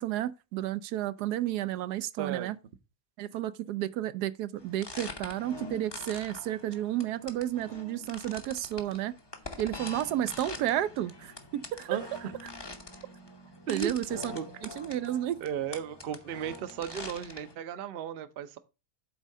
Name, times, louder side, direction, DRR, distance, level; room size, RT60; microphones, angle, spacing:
voice 1, 0.0-2.6 3.2-9.1 9.6-12.0 13.7-14.4 14.8-15.4, right 12 dB, 80° right, 1.1 m, -32 dB
voice 2, 2.2-2.5 11.9-12.3 13.7-13.9 14.3-14.5 15.4-18.6, right 8 dB, 55° right, 0.7 m, -35 dB
sound 1, 4.6-17.6, left 2 dB, 25° left, 0.6 m, -44 dB
8.3 x 3.6 x 5.3 m
omnidirectional pair, 1.7 m